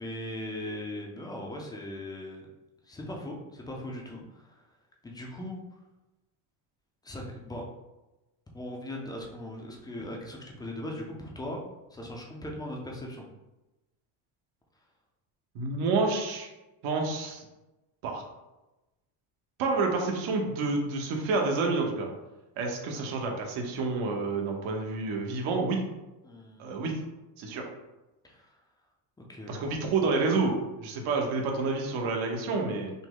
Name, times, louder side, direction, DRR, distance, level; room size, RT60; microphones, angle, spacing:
voice 1, 0.0-2.5 2.8-4.6 5.0-5.6 7.0-7.6 8.5-11.6 11.9-13.3 26.2-26.7 28.2-28.5 29.3-29.5, left 1 dB, 10° left, 0 dB, 0.4 m, -39 dB
voice 2, 15.5-16.5 16.8-17.4 18.0-18.2 19.6-22.1 22.6-25.8 26.6-26.9 27.4-27.6 29.5-30.5 30.8-32.9, right 3 dB, 75° right, 1 dB, 1.1 m, -29 dB
5.7 x 2.1 x 3.8 m, 1.0 s
cardioid pair, 150°, 50 cm